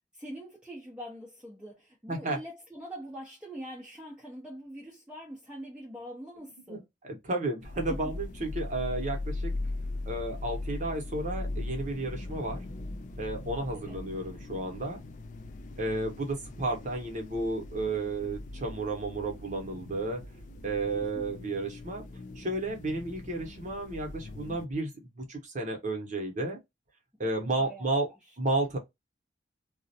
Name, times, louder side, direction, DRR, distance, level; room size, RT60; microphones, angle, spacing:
voice 1, 0.2-6.8 7.9-8.0 13.7-14.0 20.9-21.3 27.6-28.1, equal, 5° right, 0.6 m, -44 dB
voice 2, 2.1-2.4 6.7-6.8 7.0-9.5 10.1-12.6 13.2-15.0 15.8-20.2 20.6-22.0 22.4-26.6 27.2-28.1 28.4-28.8, right 2 dB, 45° right, 0.8 m, -32 dB
sound 1, 7.6-24.7, left 2 dB, 45° left, 0.3 m, -40 dB
2.4 x 2.0 x 2.7 m
head